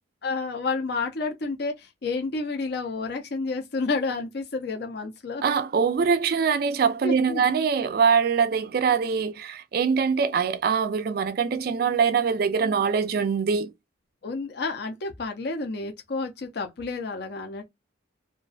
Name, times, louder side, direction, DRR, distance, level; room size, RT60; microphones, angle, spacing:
voice 1, 0.2-5.4 7.0-7.4 14.2-17.6, left 3 dB, 55° left, 0.5 m, -30 dB
voice 2, 5.4-13.7, right 6 dB, 50° right, 0.3 m, -23 dB
2.4 x 2.2 x 2.3 m
head